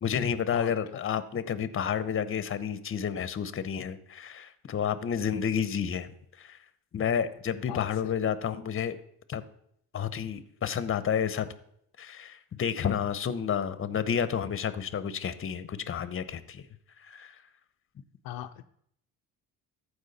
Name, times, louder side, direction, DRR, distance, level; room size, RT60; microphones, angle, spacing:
voice 1, 0.0-6.1 6.4-6.6 6.9-9.0 9.3-9.4 9.9-11.5 12.0-16.7 17.0-17.4, left 8 dB, 35° left, 14 dB, 0.9 m, -30 dB
voice 2, 7.7-8.1 18.2-18.6, left 13 dB, 75° left, 7 dB, 0.6 m, -38 dB
14.0 x 4.8 x 4.2 m, 0.70 s
supercardioid pair, 75°, 37 cm